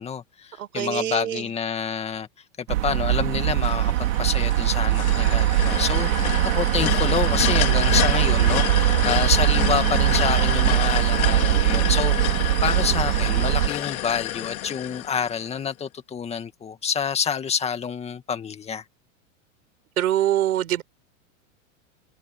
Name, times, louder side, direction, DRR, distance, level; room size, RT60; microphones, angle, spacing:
voice 1, 0.0-2.3 2.6-6.1 6.4-12.3 12.6-18.8, left 7 dB, 15° left, 2.2 m, -28 dB
voice 2, 0.6-1.5 20.0-20.8, right 12 dB, 85° right, 6.3 m, -24 dB
sound 1, 2.7-13.7, right 16 dB, 70° right, 4.8 m, -21 dB
sound 2, 3.6-15.7, left 13 dB, 85° left, 2.3 m, -29 dB
supercardioid pair, 150°, 42 cm